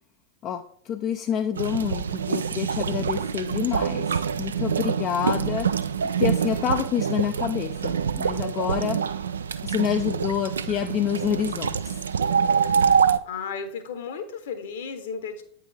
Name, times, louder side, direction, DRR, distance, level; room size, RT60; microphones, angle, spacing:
voice 1, 0.4-9.0 9.6-12.0, left 9 dB, 35° left, 7 dB, 0.4 m, -28 dB
sound 1, 1.6-13.2, right 6 dB, 70° right, 0.3 m, -25 dB
voice 2, 13.3-15.4, left 6 dB, 55° left, 9 dB, 1.0 m, -34 dB
8.7 x 4.7 x 3.4 m, 0.62 s
figure-of-eight pair, 90°, 0 cm